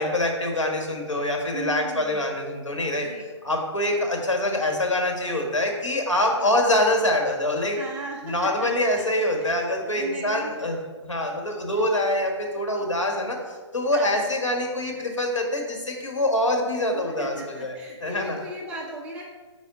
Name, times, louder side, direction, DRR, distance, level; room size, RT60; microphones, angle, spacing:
voice 1, 0.0-3.1 3.4-7.8 8.2-10.8 11.0-18.4, left 1 dB, 75° left, 1 dB, 1.5 m, -25 dB
voice 2, 1.5-2.3 3.0-3.2 3.6-3.7 6.4-6.5 7.7-8.7 9.1-10.8 11.7-11.9 13.9-14.2 16.9-19.2, right 3 dB, 5° right, -2 dB, 0.4 m, -38 dB
5.5 x 4.1 x 5.1 m, 1.4 s
figure-of-eight pair, 135°, 16 cm